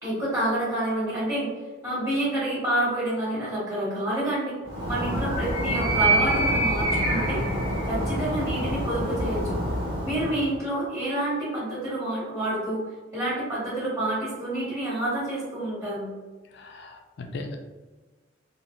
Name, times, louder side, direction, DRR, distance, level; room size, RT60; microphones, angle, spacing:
voice 1, 0.0-1.5 1.8-4.6 4.8-7.4 7.8-9.6 10.0-16.1, right 1 dB, 15° right, -9 dB, 1.1 m, -28 dB
Animal, 4.7-10.5, right 1 dB, 80° right, 0.9 m, -26 dB
voice 2, 16.6-17.6, left 2 dB, 60° left, 4 dB, 0.4 m, -38 dB
2.5 x 2.0 x 3.0 m, 1.2 s
head